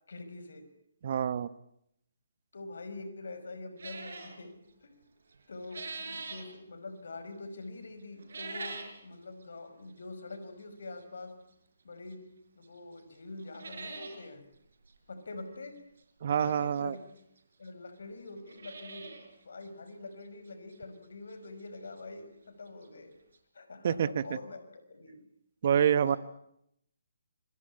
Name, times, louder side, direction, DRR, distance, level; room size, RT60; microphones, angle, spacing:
voice 1, 0.1-0.7 2.5-5.0 5.5-11.4 11.8-12.3 12.6-14.5 15.1-15.8 16.4-17.1 17.6-23.2 23.5-25.3 25.6-26.2, left 3 dB, 65° left, 10 dB, 5.4 m, -45 dB
voice 2, 1.0-1.5 16.2-16.9 23.8-24.1 25.6-26.2, right 8 dB, 50° right, 16 dB, 1.3 m, -26 dB
sound 1, 3.8-4.4 5.3-6.5 8.2-9.0 9.4-9.5 10.3-10.4 12.1-12.2 12.6-12.7 13.0-13.1 13.4-14.2 14.5-14.6 14.8-14.9 16.5-16.6 17.4-17.5 17.7-17.8 18.3-19.3 19.6-19.7 20.2-20.3 20.7-20.8 22.5-22.6 22.8-22.9 23.3-23.4, right 4 dB, 65° right, 4.8 m, -42 dB
26.5 x 22.5 x 8.6 m, 0.76 s
figure-of-eight pair, 140°, 0 cm